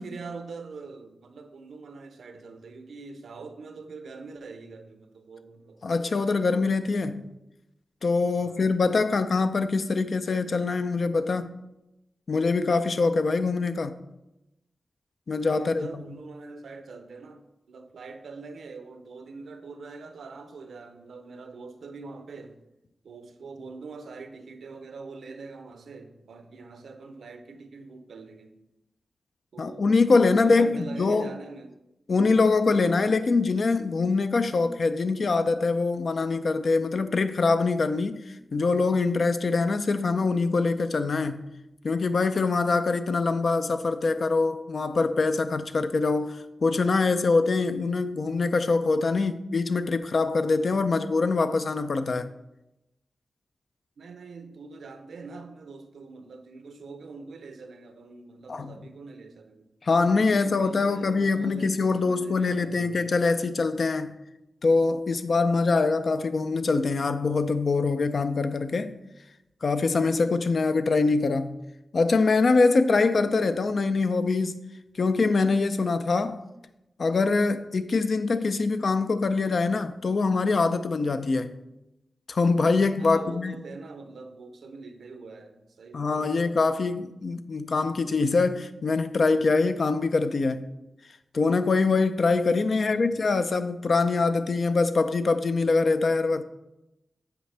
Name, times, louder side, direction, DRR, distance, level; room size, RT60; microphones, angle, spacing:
voice 1, 0.0-6.4 8.4-8.8 15.5-22.6 23.0-28.5 29.5-31.7 54.0-59.7 60.2-63.1 72.9-73.3 83.0-86.4 92.5-93.1, right 4 dB, 90° right, 0.6 m, -44 dB
voice 2, 5.8-7.2 8.0-11.5 12.3-14.0 15.3-16.0 29.6-31.3 32.1-41.5 41.8-52.3 58.5-58.8 59.8-64.2 64.6-68.9 69.6-71.6 71.9-74.6 75.0-76.4 77.0-81.5 82.3-83.6 85.9-90.6 91.3-96.4, left 3 dB, 60° left, 0.4 m, -24 dB
7.9 x 4.9 x 3.3 m
cardioid pair, 70°, 0 cm